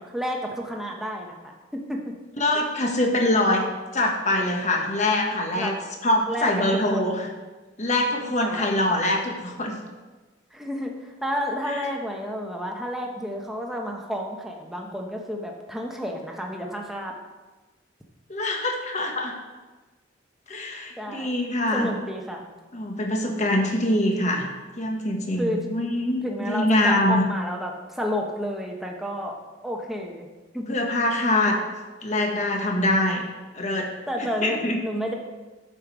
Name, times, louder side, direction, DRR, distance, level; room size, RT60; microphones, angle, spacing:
voice 1, 0.0-2.1 5.5-5.8 6.3-7.2 8.4-8.7 10.5-17.1 21.0-21.3 21.7-22.4 25.4-25.6 26.2-29.4 29.6-30.3 30.5-30.8 34.1-35.1, equal, ahead, 0 dB, 1.0 m, -31 dB
voice 2, 2.4-3.6 3.9-7.3 7.8-9.8 11.7-11.8 18.3-19.3 20.5-21.9 22.7-24.5 24.8-27.2 30.7-31.6 32.0-33.2 33.5-33.9 34.2-34.8, left 1 dB, 40° left, 2 dB, 1.3 m, -24 dB
9.0 x 5.2 x 6.1 m, 1.2 s
head